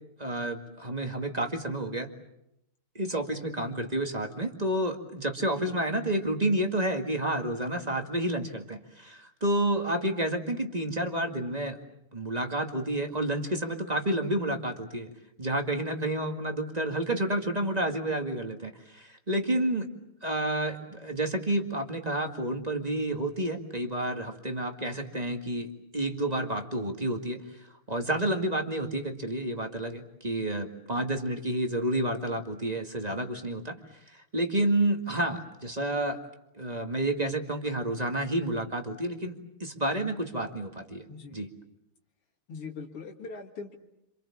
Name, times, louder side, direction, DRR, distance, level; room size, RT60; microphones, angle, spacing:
voice 1, 0.2-2.1 3.0-11.8 12.1-15.1 15.4-19.9 20.2-25.7 25.9-27.4 27.9-33.8 34.1-36.2 36.5-41.1 41.3-41.5, right 1 dB, 20° right, 4 dB, 1.9 m, -30 dB
voice 2, 41.1-41.5 42.5-43.8, left 4 dB, 85° left, 1 dB, 2.9 m, -41 dB
27.5 x 27.0 x 7.2 m, 0.84 s
omnidirectional pair, 2.4 m